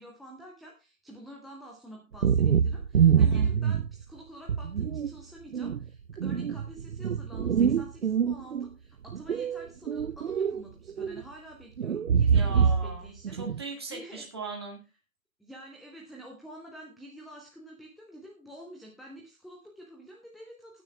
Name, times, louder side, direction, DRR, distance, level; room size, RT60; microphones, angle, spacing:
voice 1, 0.0-13.4 13.9-14.3 15.4-20.8, right 1 dB, ahead, 0 dB, 0.5 m, -48 dB
sound 1, 2.1-4.0 4.5-5.1 5.5-8.7 9.1-10.6 10.9-11.2 11.8-13.0 13.2-13.6, right 7 dB, 65° right, 0.6 m, -25 dB
voice 2, 3.2-3.5 12.3-14.8, right 4 dB, 20° right, 1 dB, 1.7 m, -39 dB
18.0 x 9.4 x 2.3 m, 0.27 s
hypercardioid pair, 180°, 41 cm